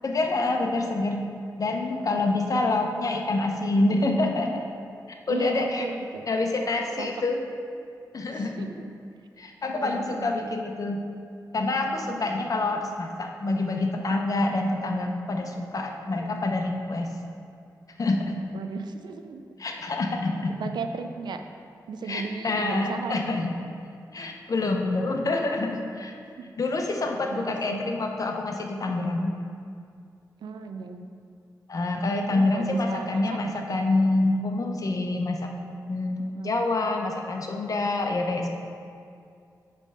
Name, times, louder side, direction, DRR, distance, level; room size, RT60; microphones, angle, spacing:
voice 1, 0.0-1.2 1.6-4.7 5.1-5.8 6.3-7.4 8.1-8.7 9.4-11.0 11.5-17.1 18.0-18.4 19.6-20.6 22.1-23.5 24.1-26.1 26.6-29.3 31.7-35.5 35.9-36.2 36.4-38.5, left 2 dB, 55° left, 3 dB, 0.8 m, -26 dB
voice 2, 1.7-2.2 5.3-6.3 7.0-7.1 8.3-8.9 9.8-10.5 12.1-12.2 16.1-16.4 18.5-19.4 20.6-21.4 21.9-23.4 26.4-26.5 27.3-27.8 28.9-29.1 30.4-31.1 32.3-33.9 36.2-36.5, right 5 dB, 85° right, 7 dB, 0.4 m, -36 dB
8.1 x 3.4 x 5.5 m, 2.4 s
cardioid pair, 65°, 7 cm